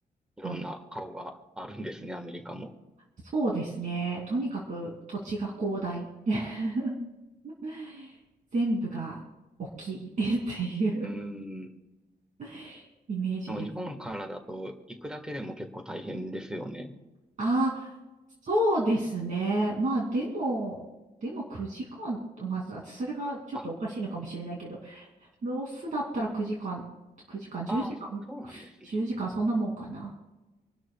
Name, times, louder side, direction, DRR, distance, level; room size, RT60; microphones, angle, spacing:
voice 1, 0.4-2.7 11.0-11.7 13.5-16.9 23.5-23.7 27.7-28.0 28.3-29.0, equal, 5° right, 5 dB, 1.4 m, -38 dB
voice 2, 3.3-6.9 7.4-8.2 8.5-9.2 9.6-11.1 12.4-13.7 17.4-17.9 18.5-20.8 21.2-25.1 25.4-26.8 27.3-27.8 28.1-30.1, right 2 dB, 50° right, -3 dB, 2.6 m, -31 dB
26.5 x 12.5 x 2.3 m, 1.1 s
wide cardioid pair, 170°, 17 cm